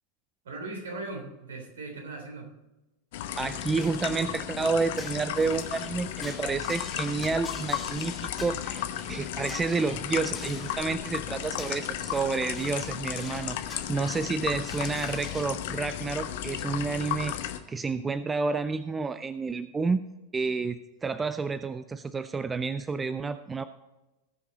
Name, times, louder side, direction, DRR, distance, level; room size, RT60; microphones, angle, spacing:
voice 1, 0.4-2.5, right 2 dB, 65° right, 2 dB, 3.4 m, -38 dB
sound 1, 3.1-17.6, left 11 dB, 50° left, 0.9 m, -34 dB
voice 2, 3.4-8.8 9.1-20.0 20.3-23.6, right 4 dB, 15° right, 13 dB, 0.4 m, -30 dB
sound 2, 3.8-15.4, left 3 dB, 10° left, 2.4 m, -47 dB
18.5 x 6.6 x 4.0 m, 1.0 s
figure-of-eight pair, 90°, 0 cm